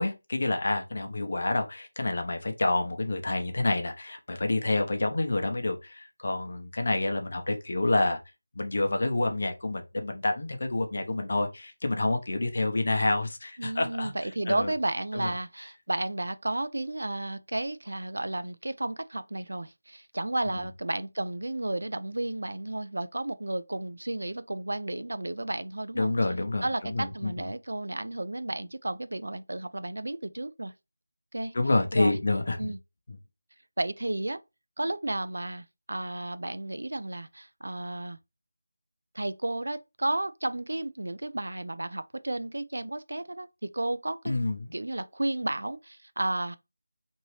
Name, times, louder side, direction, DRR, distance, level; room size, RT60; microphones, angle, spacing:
voice 1, 0.0-8.2 8.6-14.1 14.5-14.7 15.1-15.3 20.6-20.7 26.0-27.3 31.5-32.7 44.2-44.7, left 2 dB, 45° left, 0.6 m, -28 dB
voice 2, 13.6-26.1 26.6-30.7 31.3-31.5 31.9-32.2 32.6-32.8 33.8-34.4 34.8-38.2 39.1-44.4 44.7-46.6, right 1 dB, 75° right, 0.3 m, -32 dB
3.0 x 2.7 x 3.1 m
figure-of-eight pair, 175°, 0 cm